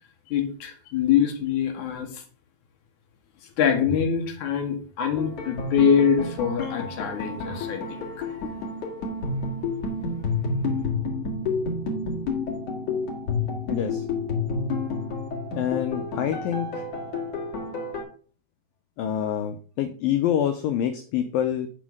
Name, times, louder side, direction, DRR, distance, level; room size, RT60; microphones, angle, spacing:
voice 1, 0.3-2.2 3.6-8.4, left 8 dB, 60° left, 3 dB, 2.3 m, -24 dB
sound 1, 5.2-18.0, left 3 dB, 45° left, 2.9 m, -29 dB
voice 2, 13.7-14.0 15.5-16.8 19.0-21.7, left 10 dB, 85° left, 8 dB, 2.0 m, -26 dB
9.2 x 4.3 x 6.1 m, 0.42 s
omnidirectional pair, 4.8 m